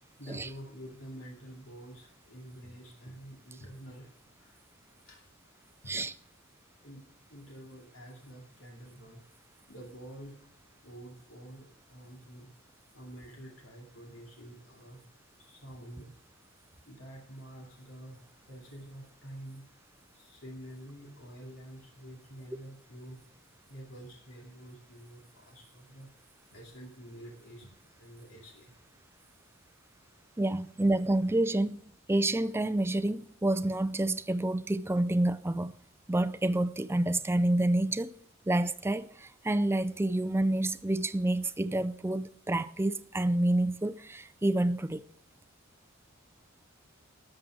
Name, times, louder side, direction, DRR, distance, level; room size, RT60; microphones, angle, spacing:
voice 1, 0.0-4.6 5.0-5.3 5.8-5.9 6.8-9.3 9.7-10.5 10.8-12.5 12.9-15.0 15.4-16.1 16.9-19.6 20.1-23.2 23.7-26.1 26.5-28.8, right 1 dB, 80° left, 2.7 m, -48 dB
voice 2, 30.4-31.8 32.1-35.7 36.1-38.1 38.5-45.1, right 1 dB, 10° right, 0.4 m, -28 dB
13.0 x 7.6 x 6.3 m
head